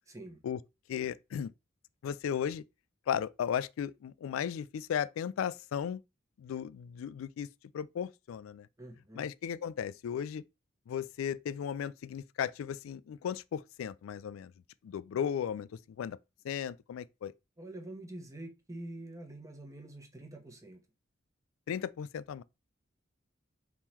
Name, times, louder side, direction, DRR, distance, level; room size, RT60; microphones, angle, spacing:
voice 1, 0.1-0.4 8.8-9.2 17.6-20.8, right 1 dB, 15° right, 0.9 m, -46 dB
voice 2, 0.9-1.5 2.0-2.6 3.1-6.0 6.4-7.5 7.7-8.7 9.1-10.4 10.9-14.5 14.8-16.2 16.4-17.3 21.7-22.4, left 8 dB, 85° left, 0.3 m, -35 dB
3.6 x 3.0 x 4.4 m
head